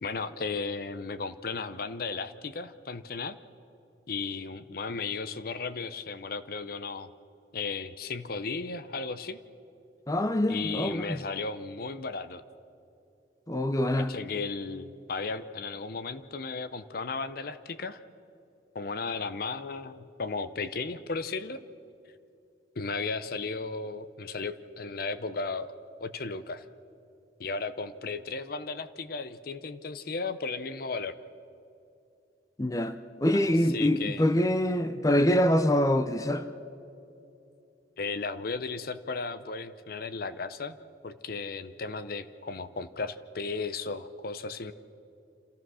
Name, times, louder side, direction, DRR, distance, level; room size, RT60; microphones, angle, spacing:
voice 1, 0.0-3.4 4.1-7.1 7.5-9.4 10.5-12.4 14.0-18.0 18.7-21.6 22.8-25.7 26.0-26.7 27.4-31.1 33.3-34.3 38.0-40.8 41.0-44.7, left 4 dB, 55° left, 13 dB, 0.7 m, -35 dB
voice 2, 10.1-11.0 13.5-14.1 32.6-32.9 33.2-36.4, left 1 dB, 20° left, 10 dB, 0.6 m, -25 dB
27.0 x 15.5 x 6.3 m, 2.7 s
head